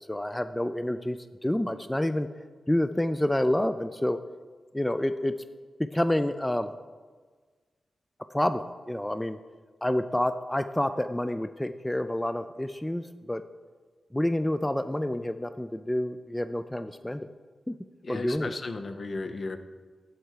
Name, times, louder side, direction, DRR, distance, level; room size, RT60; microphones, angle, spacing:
voice 1, 0.1-2.3 2.7-4.2 4.7-5.3 5.8-6.7 8.3-9.4 9.8-13.4 14.1-17.3 17.7-17.8 18.1-18.5, left 1 dB, 10° left, 11 dB, 0.3 m, -28 dB
voice 2, 18.0-19.6, left 3 dB, 55° left, 8 dB, 0.7 m, -35 dB
11.5 x 4.4 x 4.7 m, 1.4 s
cardioid pair, 45°, 0 cm